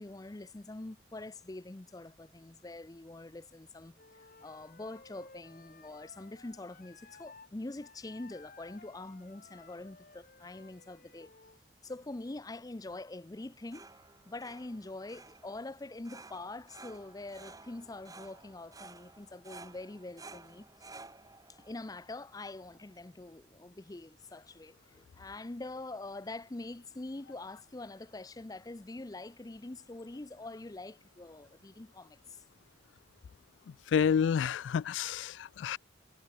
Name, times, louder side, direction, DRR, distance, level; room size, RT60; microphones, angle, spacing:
voice 1, 0.0-4.0 4.4-11.3 11.8-13.9 14.3-20.7 21.5-32.4, left 2 dB, 20° left, 0.5 m, -44 dB
Wind instrument woodwind instrument, 4.0-7.5 7.8-11.6, left 4 dB, 45° left, 2.4 m, -57 dB
sound 1, 13.4-23.1, right 3 dB, 20° right, 2.5 m, -54 dB
voice 2, 33.7-35.8, left 7 dB, 70° left, 0.3 m, -29 dB
head